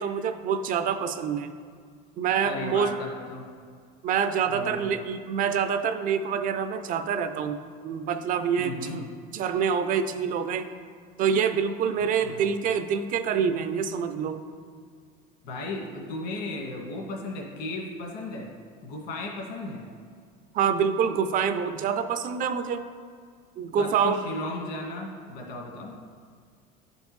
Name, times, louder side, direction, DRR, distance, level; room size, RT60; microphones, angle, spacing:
voice 1, 0.0-1.5 2.2-2.9 4.0-7.6 7.8-9.0 9.3-10.7 11.2-14.4 20.5-22.8 23.6-24.2, right 7 dB, 45° right, 9 dB, 0.5 m, -26 dB
voice 2, 2.4-3.4 4.5-4.9 8.6-9.1 12.2-12.5 15.4-18.5 18.8-19.9 23.8-25.9, left 2 dB, 65° left, -1 dB, 2.0 m, -35 dB
11.0 x 5.3 x 3.2 m, 2.1 s
cardioid pair, 125°, 19 cm